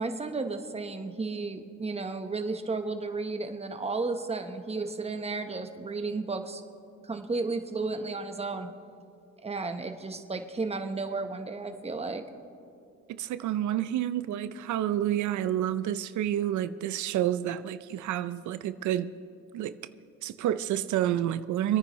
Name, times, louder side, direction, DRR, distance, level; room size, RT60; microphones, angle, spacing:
voice 1, 0.0-6.6 7.0-8.7 9.4-12.2, right 3 dB, 20° right, 1.0 m, -33 dB
voice 2, 13.1-19.1 19.5-19.7 20.2-21.8, right 11 dB, 75° right, 0.5 m, -29 dB
26.5 x 9.7 x 3.1 m
cardioid pair, 90°, 30 cm